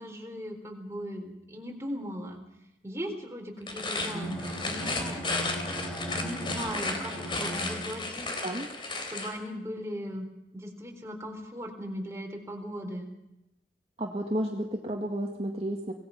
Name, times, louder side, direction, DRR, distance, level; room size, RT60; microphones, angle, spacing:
voice 1, 0.0-2.4 2.8-5.5 6.0-8.4 9.1-10.3 10.5-13.1, equal, 15° right, 2 dB, 4.0 m, -38 dB
sound 1, 3.6-9.4, left 3 dB, 30° left, 3.6 m, -34 dB
Bowed string instrument, 4.0-8.3, right 1 dB, 5° left, 6.4 m, -38 dB
voice 2, 14.0-15.9, right 1 dB, 35° right, 0 dB, 2.0 m, -32 dB
26.0 x 18.5 x 5.9 m, 0.90 s
head